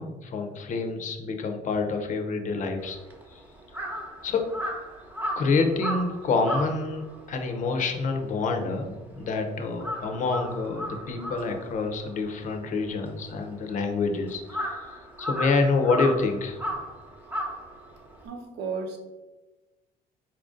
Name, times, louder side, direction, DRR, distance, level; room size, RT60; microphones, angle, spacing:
voice 1, 0.0-3.0 3.3-3.4 4.2-4.5 5.3-7.0 7.3-16.6, left 4 dB, 50° left, 5 dB, 0.6 m, -27 dB
Crow, 2.8-9.3 9.6-18.3, equal, 10° right, 0.8 m, -35 dB
voice 2, 18.2-19.0, right 5 dB, 80° right, 3 dB, 0.8 m, -33 dB
4.3 x 2.5 x 3.6 m, 1.1 s
cardioid pair, 110°, 17 cm